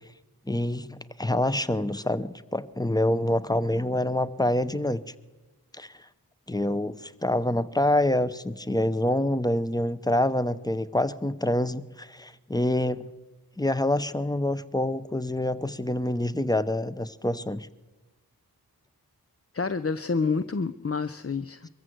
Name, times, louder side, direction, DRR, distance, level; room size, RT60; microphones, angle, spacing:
voice 1, 0.5-5.0 5.7-6.1 6.5-13.1 13.6-17.7, left 1 dB, 10° left, 14 dB, 0.9 m, -26 dB
voice 2, 19.5-21.7, left 4 dB, 35° left, 11 dB, 0.6 m, -28 dB
23.0 x 14.5 x 7.9 m, 1.2 s
wide cardioid pair, 45°, 38 cm